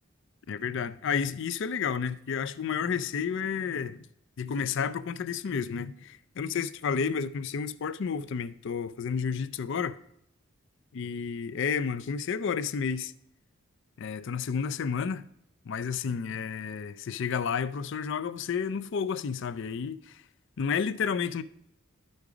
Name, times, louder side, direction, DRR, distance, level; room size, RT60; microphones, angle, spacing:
voice 1, 0.5-4.1 4.4-10.0 10.9-13.1 14.0-15.3 15.6-20.2 20.6-21.4, left 6 dB, 60° left, 0.4 m, -31 dB
12.0 x 5.3 x 4.8 m
head